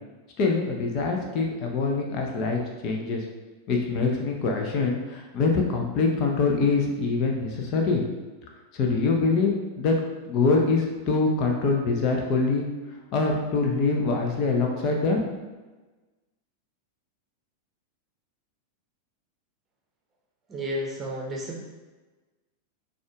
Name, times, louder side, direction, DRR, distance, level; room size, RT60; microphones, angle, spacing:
voice 1, 0.4-3.2 3.7-8.0 8.7-9.5 9.8-10.0 10.3-12.6 13.1-15.3, left 4 dB, 40° left, 1 dB, 0.7 m, -24 dB
voice 2, 20.5-21.6, equal, 20° right, -2 dB, 0.8 m, -32 dB
6.2 x 2.5 x 3.5 m, 1.2 s
figure-of-eight pair, 90°, 0 cm